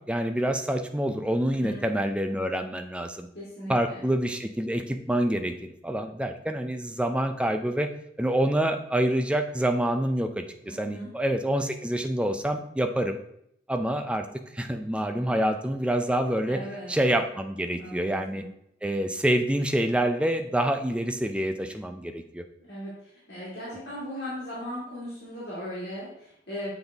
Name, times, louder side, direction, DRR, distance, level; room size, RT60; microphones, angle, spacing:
voice 1, 0.1-3.3 3.7-7.9 8.2-13.2 13.7-14.2 14.5-16.6 16.9-18.4 18.8-22.4, right 1 dB, 5° right, 6 dB, 0.3 m, -27 dB
voice 2, 1.4-1.9 3.3-4.0 10.6-11.1 15.3-15.5 16.5-16.9 17.8-18.5 22.6-26.7, equal, 60° left, -8 dB, 1.9 m, -38 dB
7.0 x 4.0 x 3.4 m, 0.75 s
head